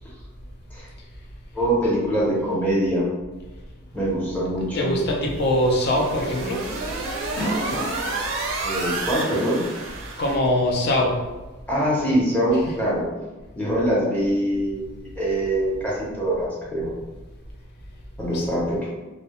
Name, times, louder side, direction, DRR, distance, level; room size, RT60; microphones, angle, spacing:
voice 1, 1.5-3.1 3.9-4.9 8.6-9.6 11.7-13.0 13.6-16.9 18.2-18.9, right 1 dB, 10° left, -7 dB, 0.6 m, -23 dB
voice 2, 4.7-6.6 10.2-11.2 18.3-18.5, left 1 dB, 55° left, 0 dB, 0.5 m, -22 dB
sound 1, 5.4-5.6 6.0-6.1 7.1-8.0 8.8-8.9 10.5-10.6, equal, 70° left, 0.9 m, -28 dB
sound 2, 5.4-10.4, right 3 dB, 65° right, 0.4 m, -30 dB
2.2 x 2.0 x 2.8 m, 1.2 s
head